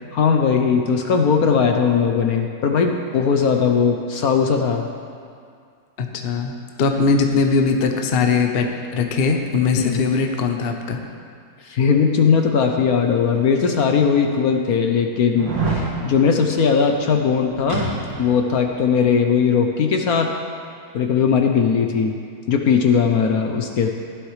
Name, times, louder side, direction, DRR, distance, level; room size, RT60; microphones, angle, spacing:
voice 1, 0.1-4.9 9.8-10.0 11.6-15.5 16.0-17.9 18.2-20.3 20.9-22.2 22.5-23.9, left 6 dB, 65° left, 3 dB, 1.1 m, -18 dB
voice 2, 6.0-6.5 6.8-11.0, left 4 dB, 45° left, 4 dB, 0.8 m, -20 dB
sound 1, 13.4-13.5 14.1-14.2 15.3-15.9 17.7-18.4 18.7-18.8, right 3 dB, 85° right, 2.9 m, -25 dB
15.5 x 11.5 x 3.2 m, 2.3 s
omnidirectional pair, 1.9 m